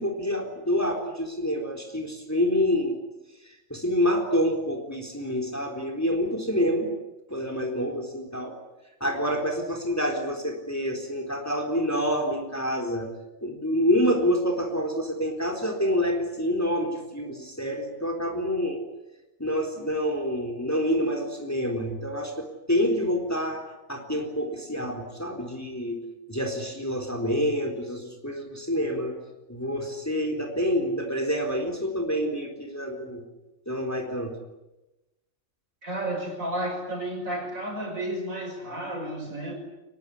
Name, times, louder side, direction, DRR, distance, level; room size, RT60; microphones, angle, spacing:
voice 1, 0.0-3.0 3.4-6.9 7.3-8.6 9.0-13.1 13.4-18.8 19.4-29.2 29.5-33.2 33.7-34.4, equal, 10° left, 3 dB, 3.8 m, -27 dB
voice 2, 35.8-39.5, right 1 dB, 75° right, 2 dB, 6.3 m, -32 dB
24.0 x 21.5 x 9.9 m, 1.0 s
omnidirectional pair, 1.4 m